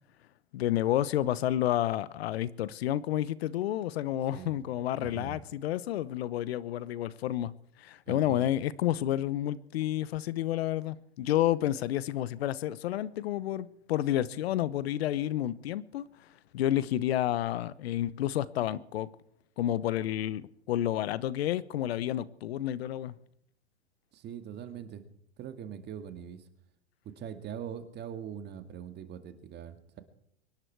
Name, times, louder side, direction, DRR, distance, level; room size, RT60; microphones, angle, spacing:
voice 1, 0.5-7.5 7.8-16.1 16.5-19.1 19.6-23.1, left 12 dB, 70° left, 1.1 m, -30 dB
voice 2, 5.0-5.4 8.1-8.5 24.1-25.0 25.4-26.5 27.0-30.0, right 8 dB, 30° right, 2.1 m, -42 dB
24.5 x 11.0 x 4.7 m
hypercardioid pair, 115°, 32 cm